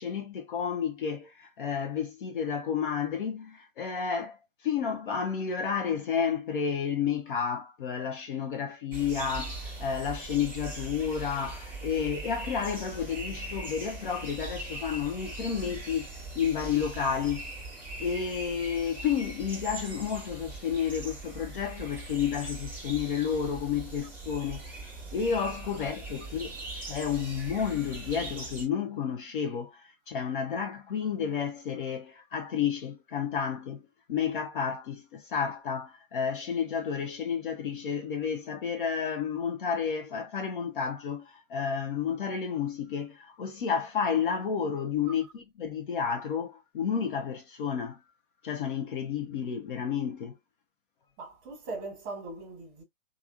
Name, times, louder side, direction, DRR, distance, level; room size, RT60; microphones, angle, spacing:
voice 1, 0.0-4.4 4.6-16.1 16.3-17.5 18.0-33.8 34.1-48.0 48.4-50.3, left 7 dB, 40° left, 0.6 m, -31 dB
sound 1, 8.9-28.7, right 2 dB, 5° right, 1.2 m, -41 dB
voice 2, 51.2-52.8, right 3 dB, 25° right, 1.3 m, -40 dB
3.3 x 2.4 x 2.4 m
figure-of-eight pair, 120°, 40 cm